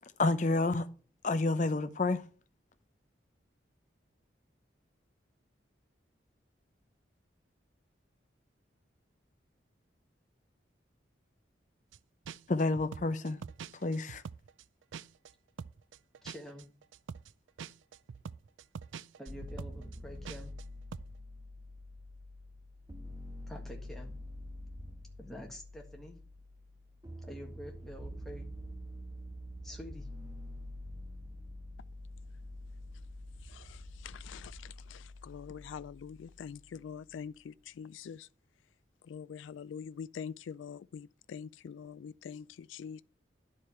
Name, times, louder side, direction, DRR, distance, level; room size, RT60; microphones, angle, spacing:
voice 1, 0.0-0.9 1.2-2.3 12.5-13.4 13.7-14.2, left 2 dB, 40° left, 0.7 m, -29 dB
sound 1, 11.9-12.0 12.2-15.3 15.6-20.6 20.9-21.1, right 6 dB, 90° right, 0.4 m, -45 dB
voice 2, 16.2-16.7 19.2-20.5 23.5-24.1 25.2-26.2 27.2-28.5 29.6-30.1, equal, ahead, 1.6 m, -47 dB
sound 2, 19.3-37.2, left 1 dB, 20° right, 1.1 m, -46 dB
voice 3, 33.4-38.3 39.0-43.0, left 7 dB, 90° left, 0.3 m, -45 dB
10.5 x 4.9 x 5.6 m
head